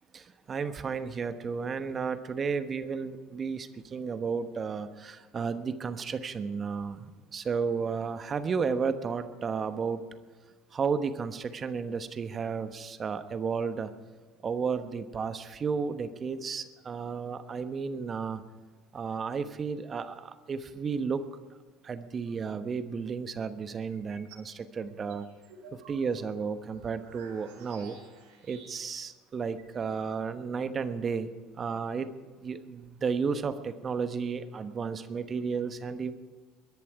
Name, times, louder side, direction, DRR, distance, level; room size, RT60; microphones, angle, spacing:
voice 1, 0.1-10.0 10.7-13.9 14.4-18.4 18.9-21.2 21.8-25.3 25.9-28.0 28.4-31.3 31.6-32.1 32.4-36.1, right 5 dB, 35° right, 11 dB, 1.1 m, -33 dB
sound 1, 23.9-24.5 24.9-29.1 29.3-29.4 29.6-30.6, right 4 dB, 75° right, 4.0 m, -53 dB
21.5 x 11.0 x 4.8 m, 1.4 s
hypercardioid pair, 70°, 0 cm